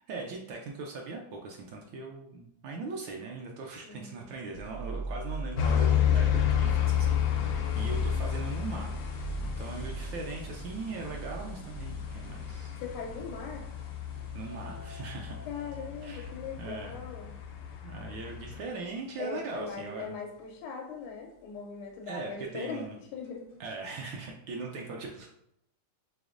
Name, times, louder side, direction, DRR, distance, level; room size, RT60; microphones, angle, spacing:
voice 1, 0.1-12.8 14.3-15.4 16.0-16.3 16.6-17.0 17.8-20.2 22.1-23.0 23.6-25.3, right 3 dB, 75° right, 0 dB, 1.2 m, -40 dB
voice 2, 3.8-4.3 12.8-13.6 15.5-17.4 19.2-22.8 23.1-23.5, left 6 dB, 90° left, 0 dB, 1.5 m, -40 dB
sound 1, 4.5-19.4 19.9-20.0 20.6-20.7 23.2-23.3, right 3 dB, 55° left, 0.5 m, -41 dB
sound 2, 5.6-18.6, left 10 dB, 70° left, 1.2 m, -31 dB
5.0 x 3.4 x 2.5 m, 0.77 s
omnidirectional pair, 2.4 m